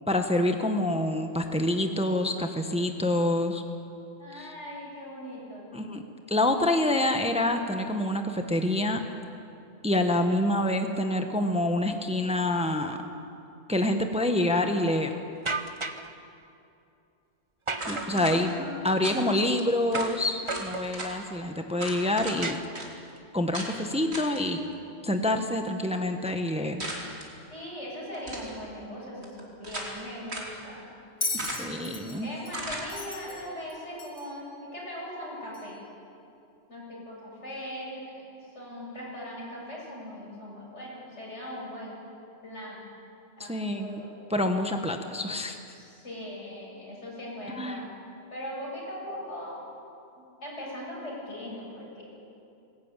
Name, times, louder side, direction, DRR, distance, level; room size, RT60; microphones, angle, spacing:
voice 1, 0.1-3.6 4.4-4.5 5.7-6.0 6.3-9.0 9.8-13.0 13.7-15.2 17.9-18.5 18.8-22.6 23.3-24.6 25.0-26.8 31.4-32.3 43.4-44.0 44.3-45.6 47.6-47.8, left 1 dB, 5° right, 5 dB, 1.1 m, -27 dB
voice 2, 4.2-5.8 18.1-19.2 27.5-30.9 32.2-35.8 36.7-42.0 42.4-42.8 43.4-44.1 45.7-47.9 48.3-49.6 50.4-52.0, equal, 85° left, -5 dB, 8.0 m, -40 dB
sound 1, 15.5-16.1 17.7-18.6 19.9-20.2 20.5-21.2 22.4-23.2, right 3 dB, 30° right, 1.0 m, -34 dB
sound 2, 17.8-18.4 19.0-19.2 19.6-19.7 19.9-20.1 20.5-21.1 21.8-22.4 22.7-22.9 23.5-23.7 24.1-24.4 26.8-27.3 28.1-28.5 29.2-30.0 30.3-30.5 31.4-31.8 32.5-32.9, right 1 dB, 65° right, 3.7 m, -36 dB
Bell, 31.2-34.4 35.5-35.7, left 3 dB, 50° left, 2.3 m, -36 dB
21.0 x 18.0 x 9.0 m, 2.6 s
omnidirectional pair, 1.2 m